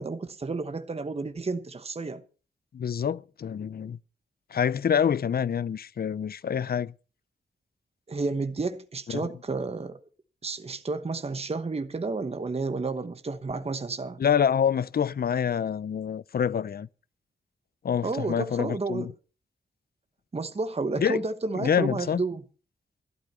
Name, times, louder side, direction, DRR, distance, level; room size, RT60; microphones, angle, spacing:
voice 1, 0.0-2.2 8.1-10.0 10.4-14.2 18.0-19.1 20.3-22.4, right 3 dB, 35° right, 1.0 m, -31 dB
voice 2, 2.7-4.0 4.5-6.9 9.1-9.3 14.2-16.9 17.8-19.1 21.0-21.2 21.5-22.2, left 8 dB, 55° left, 0.5 m, -26 dB
12.5 x 11.5 x 5.6 m
wide cardioid pair, 85°, 19 cm